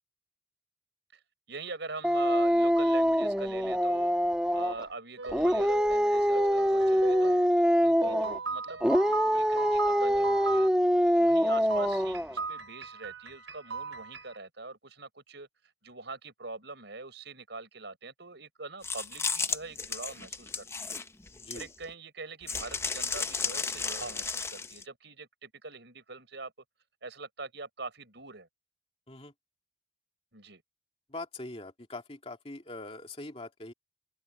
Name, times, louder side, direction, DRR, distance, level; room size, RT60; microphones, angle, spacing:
voice 1, 1.5-4.1 4.5-7.4 7.8-10.7 11.2-15.5 15.8-21.0 21.5-26.5 27.0-28.5 30.3-30.6, right 3 dB, 65° right, 5.6 m, -43 dB
Dog, 2.0-4.8 5.3-8.4 8.8-12.3, equal, 5° right, 1.1 m, -25 dB
sound 1, 5.2-7.5 8.0-10.7 11.7-14.4, right 4 dB, 80° right, 5.3 m, -38 dB
sound 2, 18.8-21.9 22.5-24.8, left 4 dB, 15° left, 0.6 m, -34 dB
voice 2, 21.3-21.7 29.1-29.3 31.1-33.7, left 2 dB, 30° left, 2.5 m, -42 dB
head